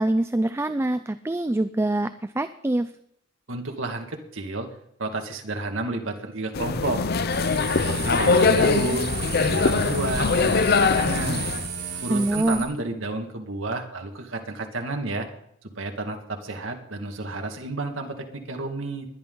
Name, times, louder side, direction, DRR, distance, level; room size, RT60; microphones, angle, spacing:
voice 1, 0.0-2.9 12.1-12.6, right 1 dB, 15° right, 11 dB, 0.4 m, -24 dB
voice 2, 3.5-4.7 5.0-7.0 7.7-9.1 9.4-11.5 12.0-15.3 15.8-19.1, right 2 dB, 85° right, 3 dB, 2.0 m, -31 dB
sound 1, 6.5-11.7, left 4 dB, 55° left, 0.6 m, -22 dB
sound 2, 7.3-12.6, right 5 dB, 60° right, 3.6 m, -33 dB
20.5 x 11.0 x 3.9 m, 0.73 s
head